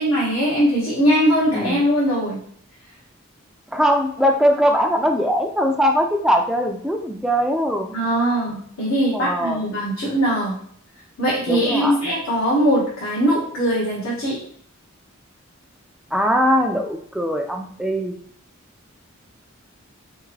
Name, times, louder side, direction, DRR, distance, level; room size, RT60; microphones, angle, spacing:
voice 1, 0.0-2.4 7.9-10.6 11.2-14.4, equal, 85° left, -7 dB, 1.5 m, -20 dB
voice 2, 3.7-7.9 9.1-9.6 11.5-12.0 16.1-18.2, equal, 5° right, 3 dB, 0.3 m, -21 dB
4.2 x 3.5 x 3.2 m, 0.63 s
head